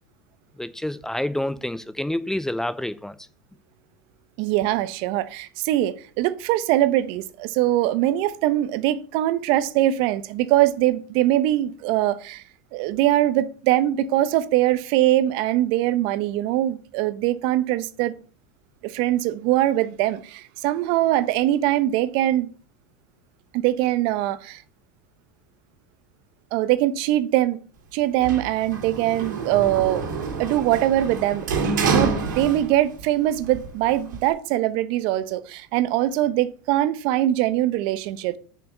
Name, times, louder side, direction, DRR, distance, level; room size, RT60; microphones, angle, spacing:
voice 1, 0.6-3.2, left 1 dB, 5° left, 0.6 m, -28 dB
voice 2, 4.4-12.4 12.7-18.1 18.8-22.5 23.5-24.6 26.5-27.6 27.9-30.0 30.4-31.5 31.8-38.4, right 14 dB, 60° right, 0.9 m, -22 dB
Sliding door, 28.2-33.0 33.4-34.3, right 4 dB, 75° right, 2.5 m, -27 dB
7.0 x 5.8 x 7.6 m
hypercardioid pair, 95°, 10 cm